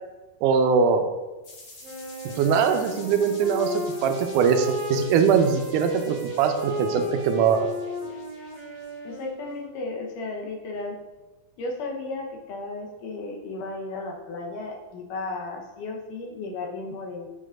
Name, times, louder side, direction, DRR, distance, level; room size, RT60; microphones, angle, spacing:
voice 1, 0.4-1.0 2.4-7.7, right 6 dB, 85° right, 6 dB, 2.1 m, -22 dB
sound 1, 1.4-9.2, left 2 dB, 50° left, 2.5 m, -48 dB
Wind instrument woodwind instrument, 1.8-9.8, equal, 40° right, 2.1 m, -35 dB
voice 2, 9.0-11.0 11.6-17.3, left 3 dB, 80° left, 1 dB, 2.5 m, -34 dB
8.3 x 6.9 x 2.5 m, 1.1 s
omnidirectional pair, 3.7 m